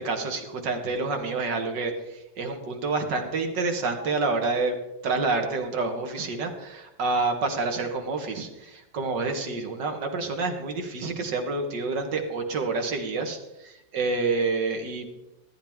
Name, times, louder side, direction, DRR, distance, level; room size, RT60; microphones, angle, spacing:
voice 1, 0.0-4.8 5.0-15.1, right 3 dB, 75° right, 4 dB, 2.0 m, -28 dB
14.0 x 10.0 x 3.6 m, 0.95 s
omnidirectional pair, 1.9 m